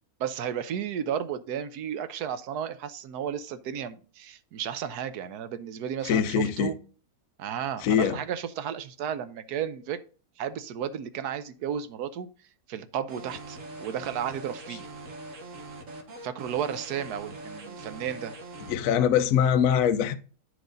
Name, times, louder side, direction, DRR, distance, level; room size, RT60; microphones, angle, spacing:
voice 1, 0.2-6.8 7.4-10.0 10.4-12.3 12.7-14.9 16.2-18.3, right 9 dB, 90° right, 1.3 m, -33 dB
voice 2, 6.1-6.7 7.8-8.2 18.7-20.2, left 8 dB, 65° left, 1.0 m, -23 dB
sound 1, 13.1-18.7, right 2 dB, 55° right, 1.6 m, -42 dB
10.0 x 4.7 x 3.9 m
omnidirectional pair, 1.6 m